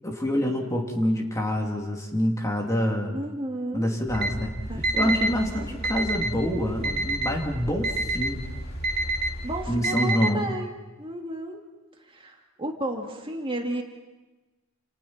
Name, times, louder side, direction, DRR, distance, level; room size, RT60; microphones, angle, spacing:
voice 1, 0.0-3.2 3.7-4.5 5.0-8.4 9.7-10.5, equal, 15° left, 0 dB, 3.0 m, -26 dB
voice 2, 3.1-3.9 4.7-5.3 5.8-5.9 9.4-10.7 11.0-11.6 12.1-13.8, right 1 dB, 25° right, 1 dB, 2.8 m, -33 dB
sound 1, 4.1-9.8, right 1 dB, 50° left, 2.7 m, -36 dB
Alarm, 4.1-4.3 4.8-5.3 5.8-6.3 6.8-7.3 7.8-8.3 8.8-9.3 9.8-10.3, right 2 dB, 50° right, 2.0 m, -26 dB
29.5 x 29.0 x 4.5 m, 1.2 s
head